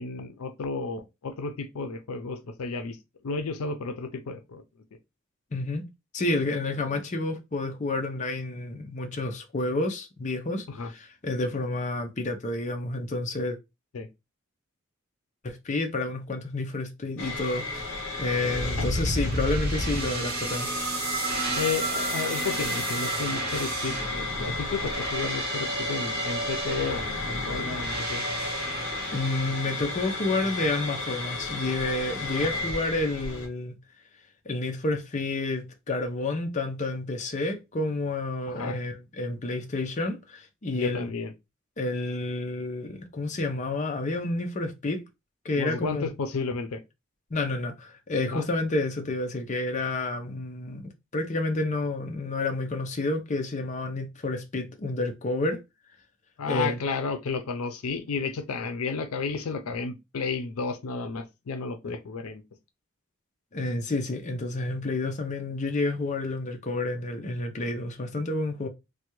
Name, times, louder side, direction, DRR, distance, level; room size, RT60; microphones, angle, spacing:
voice 1, 0.0-3.0 3.2-4.6 10.7-10.9 13.9-14.1 18.8-18.9 21.6-28.2 32.5-32.7 38.5-38.8 40.7-41.3 45.6-46.8 48.3-48.5 56.4-62.4, left 4 dB, 90° left, 0.5 m, -32 dB
voice 2, 5.5-5.8 6.1-13.6 15.4-20.7 29.1-33.8 34.5-41.1 41.8-45.0 45.4-46.1 47.3-50.8 51.1-55.6 56.5-56.8 63.5-68.7, left 2 dB, 35° left, 0.5 m, -30 dB
sound 1, 17.2-33.5, left 2 dB, 60° left, 0.8 m, -32 dB
sound 2, 18.9-30.2, right 3 dB, 45° right, 0.8 m, -34 dB
3.3 x 2.2 x 3.0 m
head